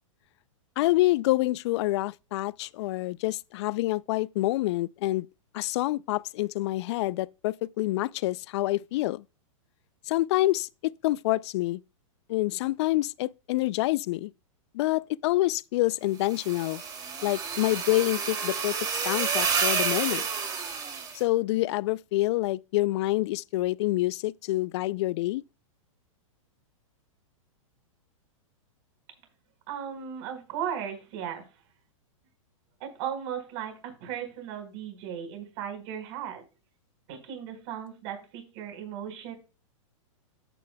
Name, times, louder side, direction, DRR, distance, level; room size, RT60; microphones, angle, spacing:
voice 1, 0.8-5.3 5.5-9.2 10.1-11.8 12.3-14.3 14.7-16.8 17.2-20.2 21.1-25.4, left 18 dB, 55° left, 0.4 m, -27 dB
sound 1, 16.3-21.2, right 5 dB, 20° right, 2.6 m, -29 dB
voice 2, 29.7-31.4 32.8-36.4 37.1-39.3, right 9 dB, 50° right, 4.6 m, -36 dB
13.0 x 9.1 x 2.3 m
hypercardioid pair, 130°, 17 cm